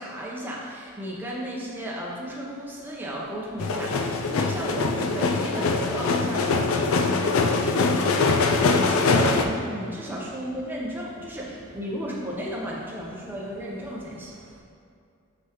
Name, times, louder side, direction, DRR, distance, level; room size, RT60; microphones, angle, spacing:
voice 1, 0.0-14.3, equal, 10° right, -4 dB, 0.8 m, -34 dB
sound 1, 3.6-9.4, left 3 dB, 70° left, 0.4 m, -23 dB
voice 2, 9.8-14.6, right 1 dB, 65° right, 1 dB, 0.6 m, -51 dB
6.0 x 5.3 x 3.0 m, 2.4 s
head